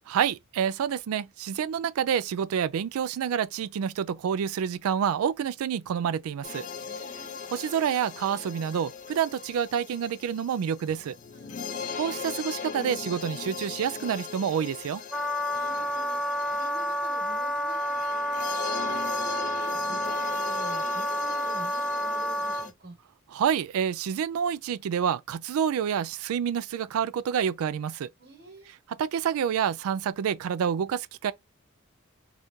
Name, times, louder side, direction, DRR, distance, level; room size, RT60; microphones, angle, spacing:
voice 1, 0.1-6.7 7.5-11.2 12.0-15.0 23.3-28.1 29.0-31.3, right 8 dB, 85° right, 0.3 m, -28 dB
sound 1, 6.4-22.7, left 6 dB, 40° left, 0.4 m, -39 dB
voice 2, 6.8-7.4 11.3-11.9 15.5-16.2 16.5-18.5 18.8-23.0 28.2-28.7, right 3 dB, 50° right, 1.2 m, -47 dB
Wind instrument woodwind instrument, 15.1-22.7, left 1 dB, ahead, 0.6 m, -29 dB
2.7 x 2.4 x 3.5 m
head